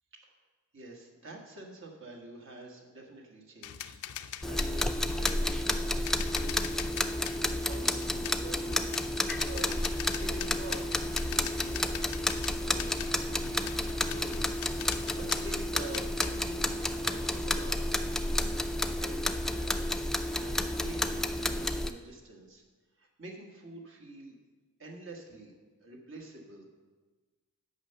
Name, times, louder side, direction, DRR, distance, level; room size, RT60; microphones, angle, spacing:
voice 1, 0.7-6.8 7.2-9.1 9.4-12.0 12.5-22.6 23.0-24.4 24.8-25.5 25.8-26.6, right 2 dB, 60° right, 1 dB, 1.5 m, -47 dB
sound 1, 3.6-15.5 15.9-16.4, left 11 dB, 70° left, 0.4 m, -43 dB
sound 2, 4.4-21.9, left 1 dB, ahead, 0.3 m, -31 dB
9.3 x 5.5 x 6.7 m, 1.3 s
head